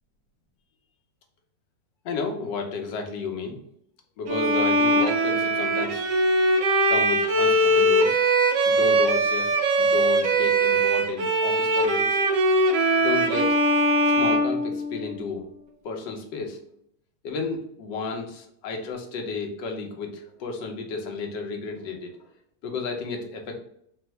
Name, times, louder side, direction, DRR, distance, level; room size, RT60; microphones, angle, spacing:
voice 1, 2.0-3.6 4.2-6.1 6.9-8.2 8.7-12.2 13.0-13.6 14.1-15.4 15.8-16.6 17.2-22.2 22.6-23.6, left 4 dB, 75° left, 3 dB, 1.5 m, -32 dB
Bowed string instrument, 4.3-15.3, right 1 dB, 75° right, 1.3 m, -21 dB
4.3 x 2.0 x 4.4 m, 0.69 s
omnidirectional pair, 2.0 m